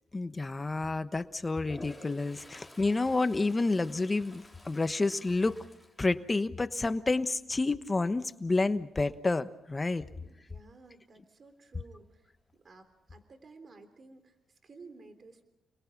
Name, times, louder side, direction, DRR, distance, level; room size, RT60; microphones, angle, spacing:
voice 1, 0.1-5.6 6.0-10.0, left 3 dB, 25° left, 11 dB, 1.1 m, -29 dB
Toilet flush, 1.6-6.8 7.2-7.5 12.0-12.1 12.4-13.1, left 1 dB, ahead, 4.6 m, -53 dB
voice 2, 10.2-15.4, right 3 dB, 45° right, 9 dB, 3.3 m, -54 dB
29.5 x 21.0 x 6.0 m, 0.87 s
cardioid pair, 85°, 0 cm